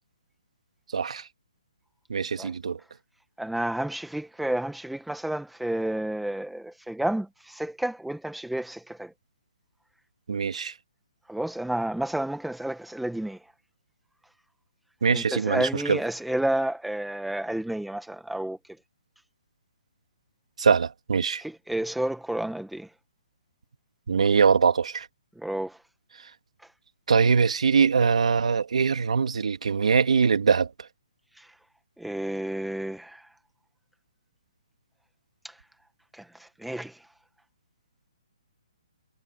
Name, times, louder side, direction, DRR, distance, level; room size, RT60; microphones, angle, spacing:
voice 1, 0.9-1.3 2.1-2.8 10.3-10.7 15.0-16.0 20.6-21.4 24.1-25.1 27.1-30.7, right 5 dB, 70° right, 2.7 m, -22 dB
voice 2, 3.4-9.1 11.3-13.4 15.1-18.6 21.4-22.9 25.4-25.8 31.4-31.5 32.0-33.3 35.4-35.5 36.1-37.0, right 1 dB, ahead, 1.5 m, -31 dB
hypercardioid pair, 170°, 4 cm